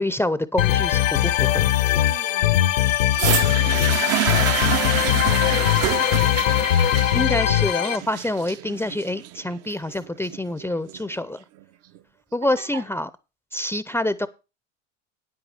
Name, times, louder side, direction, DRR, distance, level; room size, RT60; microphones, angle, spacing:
voice 1, 0.0-1.7 7.1-11.4 12.3-13.1 13.5-14.3, left 1 dB, 5° left, 0.6 m, -26 dB
sound 1, 0.6-8.0, left 13 dB, 75° left, 1.1 m, -20 dB
voice 2, 2.0-6.6 10.7-10.8 12.4-12.8, right 6 dB, 80° right, 4.2 m, -44 dB
sound 2, 3.1-11.1 11.9-12.0, right 13 dB, 40° right, 0.6 m, -27 dB
9.7 x 8.3 x 4.9 m
hypercardioid pair, 80°, 39 cm